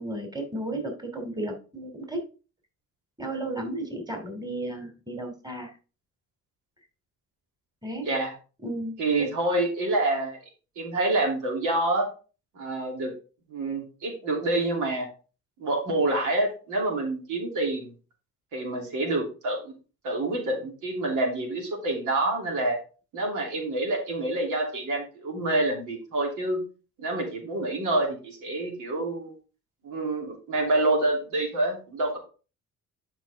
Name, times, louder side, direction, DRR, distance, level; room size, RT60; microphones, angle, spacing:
voice 1, 0.0-2.2 3.2-5.7 7.8-8.1 8.6-9.3, right 1 dB, 15° right, 3 dB, 2.7 m, -34 dB
voice 2, 9.0-10.4 10.8-12.1 12.5-13.1 13.5-15.1 15.6-17.9 18.5-19.7 20.0-22.8 23.1-26.6 27.0-29.3 29.8-32.2, right 2 dB, 85° right, 1 dB, 2.8 m, -27 dB
10.5 x 5.3 x 3.5 m, 0.34 s
cardioid pair, 90°, 30 cm